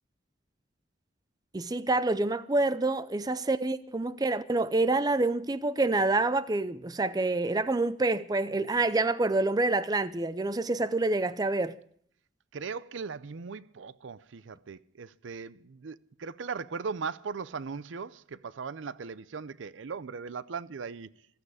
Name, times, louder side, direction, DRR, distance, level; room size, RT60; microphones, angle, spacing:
voice 1, 1.5-11.8, right 2 dB, 20° right, 0.5 m, -27 dB
voice 2, 12.5-21.1, right 5 dB, 75° right, 0.5 m, -38 dB
15.0 x 13.5 x 4.9 m
head